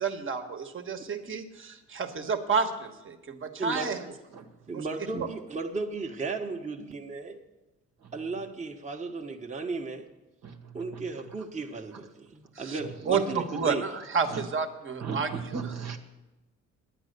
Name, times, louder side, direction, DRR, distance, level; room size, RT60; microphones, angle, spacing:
voice 1, 0.0-4.0 4.7-4.9 12.5-12.8 13.1-15.7, right 5 dB, 45° right, 5 dB, 1.3 m, -30 dB
voice 2, 3.6-3.9 4.7-7.4 8.1-10.1 10.7-13.9, right 3 dB, 25° right, 1 dB, 1.2 m, -35 dB
voice 3, 15.0-16.0, right 5 dB, 60° right, 3 dB, 1.3 m, -35 dB
10.0 x 9.0 x 6.7 m, 1.1 s
cardioid pair, 90°, 30 cm